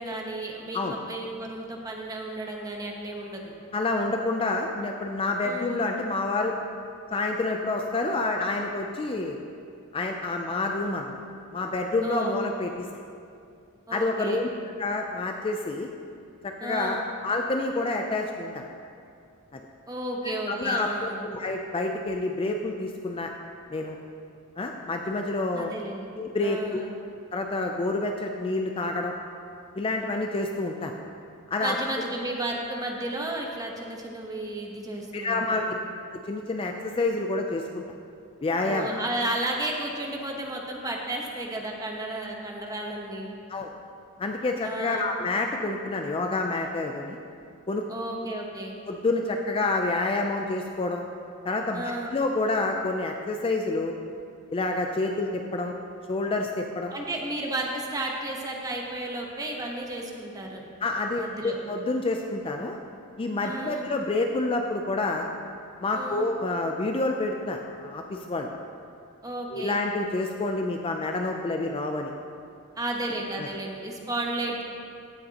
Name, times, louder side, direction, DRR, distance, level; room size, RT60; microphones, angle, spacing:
voice 1, 0.0-3.5 5.4-5.9 12.0-12.4 13.9-14.4 16.6-17.0 19.9-21.2 25.5-26.1 26.4-26.9 31.6-35.6 38.6-43.4 44.6-45.1 47.9-48.8 51.7-52.1 56.9-60.6 61.2-61.6 63.4-63.9 65.9-66.3 69.2-69.8 72.8-74.6, right 1 dB, 15° right, 0 dB, 0.9 m, -33 dB
voice 2, 3.7-6.5 7.1-9.4 9.9-11.2 11.5-12.9 13.9-14.5 14.8-15.9 16.4-18.6 19.5-19.6 20.5-23.3 23.7-24.0 24.6-25.7 26.1-26.8 27.3-29.1 29.8-30.9 31.5-31.8 35.1-35.6 36.3-37.8 38.4-38.9 43.5-43.7 44.2-47.2 47.7-47.8 48.9-51.0 51.4-53.9 54.5-55.7 56.1-56.9 60.8-62.8 63.2-65.3 65.8-68.5 69.5-72.1 73.4-73.5, left 2 dB, 25° left, 3 dB, 0.4 m, -28 dB
16.0 x 6.6 x 2.9 m, 2.5 s
head